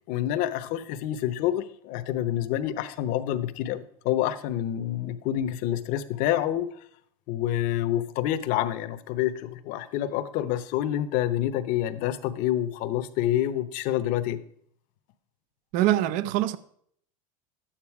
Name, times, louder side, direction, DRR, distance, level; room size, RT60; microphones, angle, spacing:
voice 1, 0.1-6.7 7.3-14.4, left 12 dB, 50° left, 0.9 m, -27 dB
voice 2, 15.7-16.6, right 13 dB, 45° right, 0.6 m, -23 dB
12.0 x 9.0 x 4.8 m
supercardioid pair, 145°, 18 cm